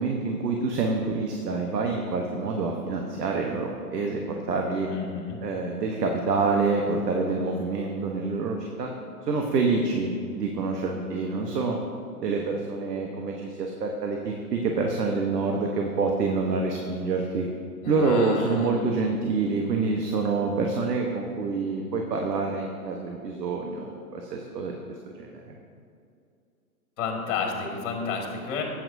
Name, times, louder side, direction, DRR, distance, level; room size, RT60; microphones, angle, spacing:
voice 1, 0.0-4.2 4.5-4.9 5.4-8.9 9.2-11.8 12.2-17.5 17.9-24.7 25.2-25.6, right 4 dB, 85° right, 1 dB, 1.2 m, -27 dB
voice 2, 4.9-5.4 17.8-18.7 27.0-28.6, left 5 dB, 50° left, 1 dB, 2.0 m, -31 dB
12.5 x 8.8 x 2.7 m, 2.4 s
hypercardioid pair, 150°, 47 cm